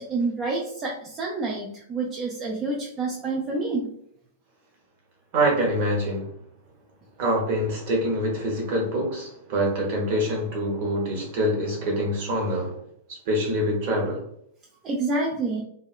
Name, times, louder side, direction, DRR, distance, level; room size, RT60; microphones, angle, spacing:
voice 1, 0.0-3.9 14.8-15.6, right 3 dB, 25° right, 0.4 m, -28 dB
voice 2, 5.3-6.3 7.2-12.8 13.1-14.2, equal, 45° right, 0.9 m, -25 dB
2.7 x 2.2 x 2.3 m
figure-of-eight pair, 95°, 0 cm